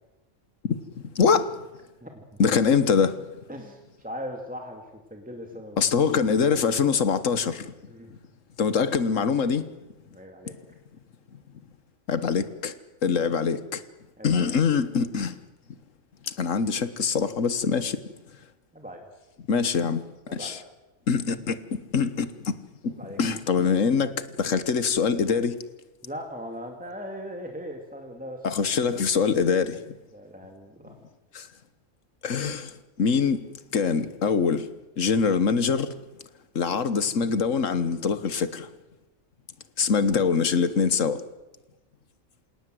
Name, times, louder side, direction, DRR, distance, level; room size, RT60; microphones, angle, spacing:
voice 1, 1.1-1.6 2.4-3.2 5.8-7.7 8.6-9.7 10.5-10.6 12.1-12.7 13.0-13.8 14.2-15.4 16.2-18.0 19.5-20.0 20.3-20.6 21.1-25.6 28.4-30.0 31.3-31.5 32.2-33.4 33.7-34.7 35.0-35.9 36.5-38.7 39.8-41.2, left 6 dB, 75° left, 1.6 m, -24 dB
voice 2, 3.5-4.8 5.1-5.9 7.9-8.1 10.1-10.6 14.2-14.5 18.7-19.0 20.3-20.5 22.9-23.2 26.0-28.5 30.1-31.0, equal, 5° right, 2.4 m, -39 dB
27.5 x 18.0 x 7.8 m
omnidirectional pair, 1.3 m